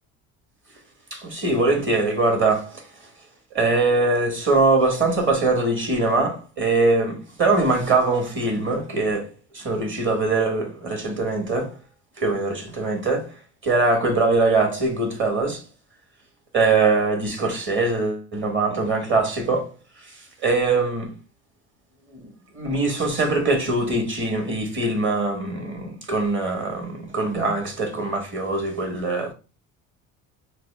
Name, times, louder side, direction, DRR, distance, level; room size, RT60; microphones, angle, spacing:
voice 1, 1.1-2.8 3.5-11.7 12.2-13.3 13.6-15.6 16.5-19.7 20.0-20.1 20.4-21.2 22.1-29.3, right 3 dB, 30° right, 1.4 m, -22 dB
4.0 x 2.0 x 3.3 m
supercardioid pair, 80°, 41 cm